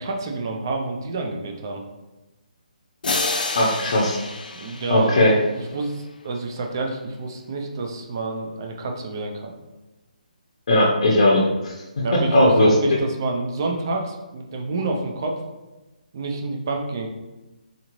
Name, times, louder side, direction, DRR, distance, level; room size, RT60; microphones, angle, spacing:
voice 1, 0.0-1.8 4.5-9.5 12.0-15.4 16.1-17.1, right 3 dB, 25° right, 2 dB, 0.4 m, -28 dB
sound 1, 3.0-5.9, left 3 dB, 85° left, 0.5 m, -29 dB
voice 2, 3.5-4.2 4.9-5.3 10.7-11.7 12.3-12.7, left 1 dB, 40° left, -5 dB, 0.6 m, -17 dB
3.8 x 2.4 x 3.0 m, 1.1 s
hypercardioid pair, 175°, 5 cm